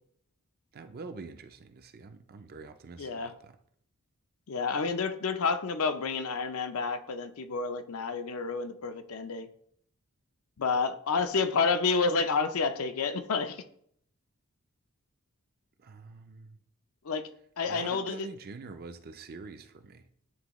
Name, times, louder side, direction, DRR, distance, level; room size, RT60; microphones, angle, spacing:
voice 1, 0.7-3.6 15.8-16.6 17.7-20.1, right 4 dB, 45° right, 0.4 m, -45 dB
voice 2, 3.0-3.3 4.5-9.5 10.6-13.6 17.0-17.3 17.6-18.3, left 4 dB, 70° left, 0.5 m, -29 dB
9.2 x 3.5 x 3.0 m
head